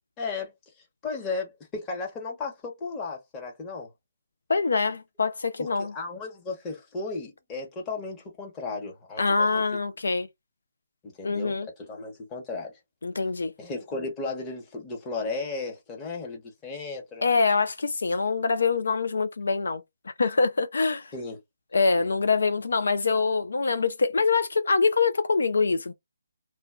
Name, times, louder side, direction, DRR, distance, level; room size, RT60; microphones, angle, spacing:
voice 1, 0.2-0.5 1.0-3.9 5.6-9.5 11.0-12.7 13.6-17.2 21.1-21.4, left 3 dB, 15° left, 0.9 m, -35 dB
voice 2, 4.5-5.9 9.2-10.3 11.2-11.7 13.0-13.5 17.2-19.8 20.2-21.1 21.7-25.9, left 4 dB, 65° left, 0.3 m, -24 dB
2.2 x 2.1 x 3.5 m
figure-of-eight pair, 145°, 0 cm